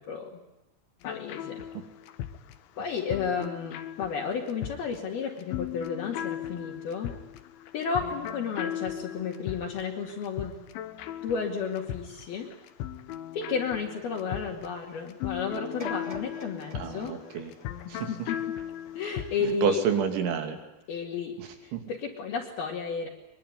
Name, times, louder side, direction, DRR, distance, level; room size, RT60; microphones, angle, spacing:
voice 1, 0.1-0.4 1.0-1.6 2.8-7.1 7.7-10.6 11.2-12.5 13.3-17.2 17.9-18.4 18.9-19.8 20.9-23.1, left 6 dB, 60° left, -3 dB, 3.9 m, -32 dB
sound 1, 1.0-19.6, left 11 dB, 85° left, 3.7 m, -38 dB
sound 2, 15.8-18.9 19.4-19.5, right 1 dB, 15° right, 1.3 m, -45 dB
voice 2, 16.7-17.5 17.9-18.1 19.6-20.6 21.7-21.8, right 6 dB, 80° right, 6 dB, 5.0 m, -28 dB
23.5 x 23.0 x 9.6 m, 0.93 s
omnidirectional pair, 5.3 m